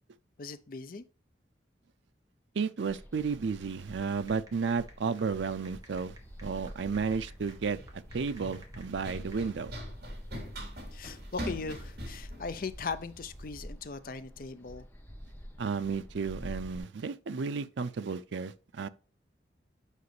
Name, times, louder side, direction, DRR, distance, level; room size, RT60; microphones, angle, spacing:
voice 1, 0.4-1.0 10.9-14.9, left 4 dB, 50° left, 0.5 m, -39 dB
voice 2, 2.6-6.1 6.4-9.7 15.6-18.9, right 5 dB, 85° right, 0.5 m, -33 dB
sound 1, 2.9-16.8, equal, 10° left, 0.9 m, -48 dB
sound 2, 4.3-9.4, right 2 dB, 20° right, 1.4 m, -57 dB
Run, 5.7-13.6, equal, 55° right, 3.3 m, -44 dB
8.2 x 5.2 x 3.2 m
head